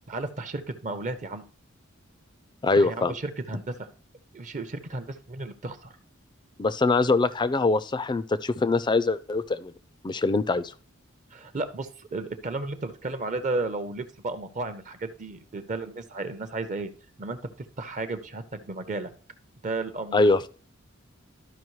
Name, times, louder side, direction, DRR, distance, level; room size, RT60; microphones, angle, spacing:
voice 1, 0.1-1.4 2.8-3.9 4.3-5.9 11.3-16.9 17.2-19.1 19.6-20.5, right 2 dB, 35° right, 10 dB, 0.6 m, -33 dB
voice 2, 2.6-3.2 6.6-9.7 10.0-10.7 20.1-20.5, left 3 dB, 20° left, 16 dB, 0.4 m, -23 dB
12.5 x 5.0 x 3.1 m, 0.39 s
head